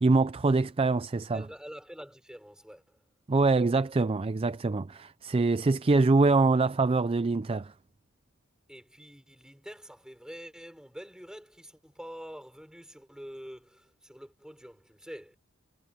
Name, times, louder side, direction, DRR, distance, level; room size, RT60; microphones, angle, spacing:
voice 1, 0.0-1.4 3.3-7.7, right 3 dB, 25° right, 0.4 m, -24 dB
voice 2, 1.3-3.0 8.7-15.4, equal, 5° right, 6.1 m, -46 dB
head